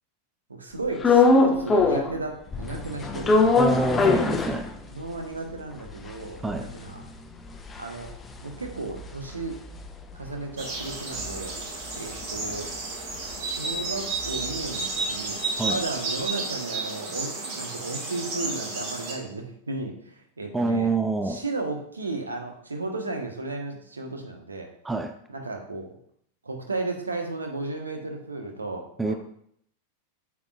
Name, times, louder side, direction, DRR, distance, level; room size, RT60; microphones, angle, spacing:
voice 1, 0.5-3.9 4.9-7.0 7.8-8.1 8.4-9.6 10.1-11.6 11.9-12.7 13.4-15.4 15.7-20.9 21.3-24.7 25.3-26.0 26.4-29.1, right 3 dB, 75° right, 3 dB, 1.3 m, -34 dB
sound 1, 1.0-2.2 2.5-5.1 5.5-5.6 5.8-10.3 10.6-14.7, left 3 dB, 15° left, 0.8 m, -24 dB
voice 2, 3.6-4.7 6.4-6.7 15.6-15.8 20.5-21.4 24.8-25.1 29.0-29.1, right 3 dB, 10° right, 8 dB, 0.6 m, -26 dB
sound 2, 10.6-19.1, right 3 dB, 45° right, 3.0 m, -32 dB
8.6 x 7.3 x 2.5 m, 0.67 s
figure-of-eight pair, 90°, 0 cm